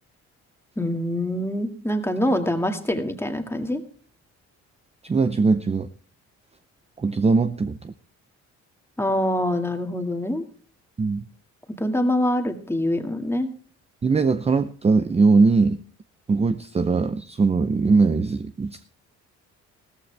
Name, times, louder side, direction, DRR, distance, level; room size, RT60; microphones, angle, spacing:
voice 1, 0.8-3.8 9.0-10.4 11.8-13.5, left 1 dB, 10° left, 5 dB, 2.0 m, -25 dB
voice 2, 5.0-5.9 7.0-7.9 11.0-11.3 14.0-15.8 16.3-18.8, right 4 dB, 20° right, 11 dB, 0.6 m, -21 dB
16.0 x 14.0 x 3.4 m, 0.41 s
cardioid pair, 90°, 30 cm